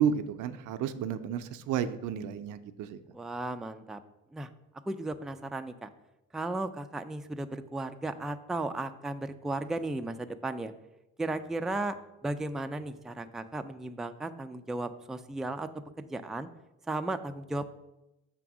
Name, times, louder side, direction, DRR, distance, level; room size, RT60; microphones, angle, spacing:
voice 1, 0.0-3.0, right 8 dB, 85° right, 10 dB, 0.5 m, -31 dB
voice 2, 3.1-4.0 4.3-4.5 4.9-5.9 6.3-10.7 11.2-11.9 12.2-15.7 16.0-16.5 16.9-17.7, right 2 dB, ahead, 7 dB, 0.3 m, -35 dB
6.0 x 3.6 x 5.9 m, 0.92 s
cardioid pair, 90°, 30 cm